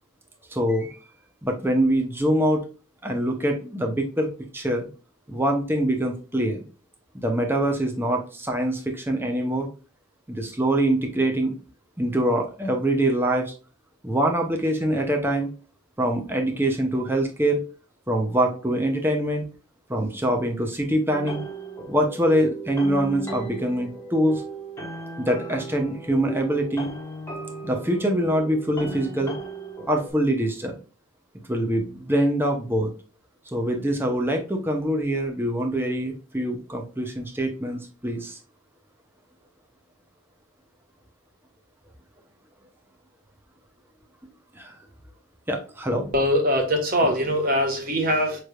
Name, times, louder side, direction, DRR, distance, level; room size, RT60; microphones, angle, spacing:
voice 1, 0.5-1.0 1.4-2.6 3.0-4.8 5.3-6.6 7.1-9.7 10.3-11.5 12.0-13.5 14.0-15.5 16.0-17.6 18.1-19.4 19.9-21.4 21.9-24.4 25.2-26.9 27.6-29.3 29.9-30.7 31.5-32.9 33.5-38.4 44.6-44.7 45.5-46.1 47.0-47.1, right 1 dB, 10° right, 2 dB, 0.7 m, -24 dB
sound 1, 21.1-30.1, right 2 dB, 10° left, 1.0 m, -37 dB
voice 2, 46.1-48.4, equal, 45° right, 2 dB, 1.1 m, -22 dB
5.4 x 3.2 x 2.3 m, 0.36 s
head